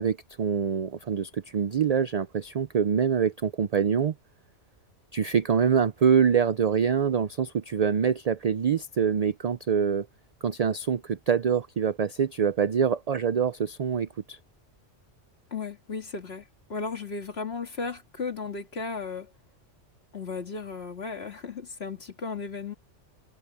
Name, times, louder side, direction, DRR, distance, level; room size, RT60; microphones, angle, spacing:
voice 1, 0.0-4.1 5.1-10.1 10.4-14.4, right 7 dB, 55° right, 0.4 m, -25 dB
voice 2, 15.5-19.3 20.1-22.7, left 4 dB, 55° left, 2.3 m, -35 dB
omnidirectional pair, 1.3 m